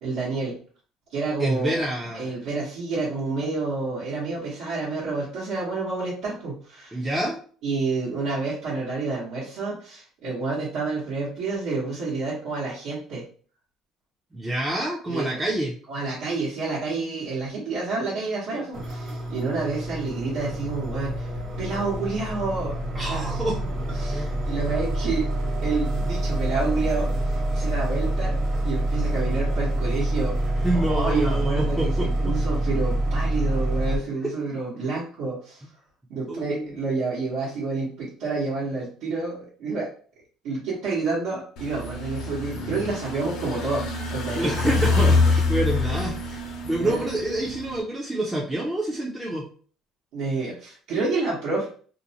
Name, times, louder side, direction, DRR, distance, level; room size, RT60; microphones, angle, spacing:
voice 1, 0.0-0.5 1.1-7.0 7.6-13.2 15.1-15.4 15.9-21.3 21.6-22.8 23.1-23.4 23.9-25.2 25.6-28.4 28.6-30.3 30.7-35.6 36.1-39.9 40.4-43.8 44.1-44.5 46.8-47.0 50.1-51.7, right 3 dB, 75° right, -8 dB, 0.9 m, -29 dB
voice 2, 1.4-2.3 6.9-7.4 14.3-15.7 22.9-23.6 24.1-24.4 30.6-32.3 34.8-34.9 36.3-36.7 44.4-46.4 46.6-49.4, right 1 dB, 10° right, -4 dB, 0.4 m, -27 dB
sound 1, 18.7-34.0, right 1 dB, 45° right, 1.0 m, -26 dB
sound 2, 41.6-47.8, left 3 dB, 70° left, 0.7 m, -25 dB
2.6 x 2.0 x 2.7 m, 0.43 s
cardioid pair, 130°, 0 cm